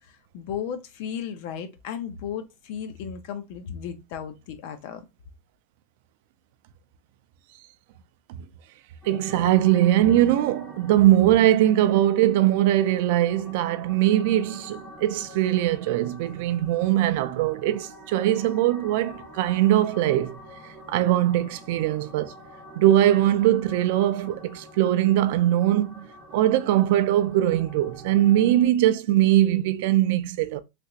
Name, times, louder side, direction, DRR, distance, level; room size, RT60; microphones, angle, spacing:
voice 1, 0.3-5.0, left 8 dB, 55° left, 0.7 m, -34 dB
sound 1, 9.0-28.7, equal, 5° right, 1.5 m, -46 dB
voice 2, 9.0-20.4 20.9-22.3 22.8-26.1 26.3-30.6, right 13 dB, 60° right, 0.4 m, -21 dB
3.4 x 2.9 x 2.7 m
supercardioid pair, 170°, 0 cm